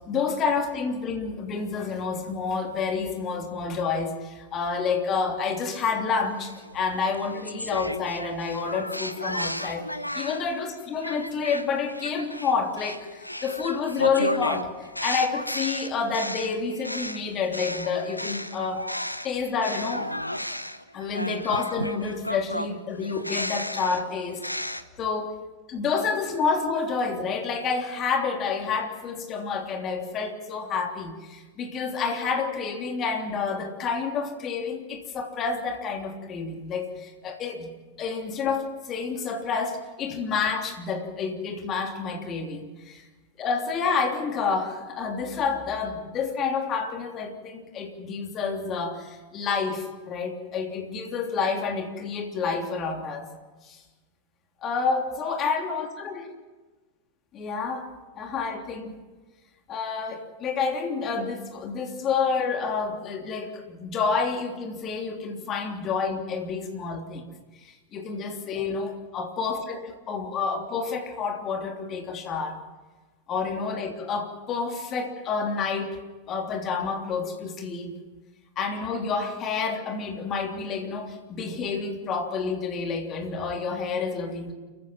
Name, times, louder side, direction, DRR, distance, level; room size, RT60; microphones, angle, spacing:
voice 1, 0.0-9.9 10.1-18.9 19.2-20.1 20.9-24.4 25.0-25.3 25.7-37.7 38.0-43.0 43.4-53.3 53.6-53.8 54.6-56.3 57.3-57.9 58.2-59.0 59.7-67.3 67.6-72.6 73.3-76.0 76.3-78.0 78.6-84.5, left 5 dB, 30° left, 3 dB, 3.3 m, -29 dB
sound 1, 6.4-10.5 11.0-19.3 19.6-24.8, left 1 dB, 90° left, 0.9 m, -33 dB
29.5 x 15.0 x 6.1 m, 1.3 s
figure-of-eight pair, 90°, 0 cm